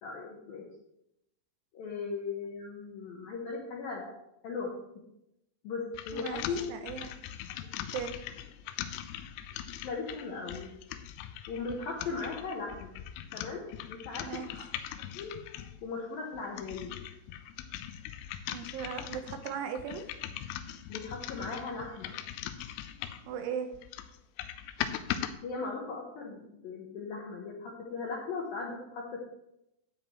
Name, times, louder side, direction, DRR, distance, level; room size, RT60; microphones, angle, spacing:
voice 1, 0.0-0.7 1.7-4.1 4.4-5.0 5.6-6.7 9.8-10.7 11.5-12.9 13.3-14.7 15.1-15.4 15.8-17.0 20.9-22.1 25.4-29.2, left 4 dB, 75° left, -2 dB, 2.2 m, -38 dB
sound 1, 5.9-15.8 16.3-23.3 23.7-25.3, left 11 dB, 90° left, 3.2 m, -40 dB
voice 2, 6.1-6.4 6.7-7.1 7.9-8.2 14.2-14.5 18.5-20.0 23.3-23.7, right 7 dB, 80° right, 6 dB, 3.1 m, -37 dB
12.5 x 8.6 x 3.1 m, 0.83 s
omnidirectional pair, 5.7 m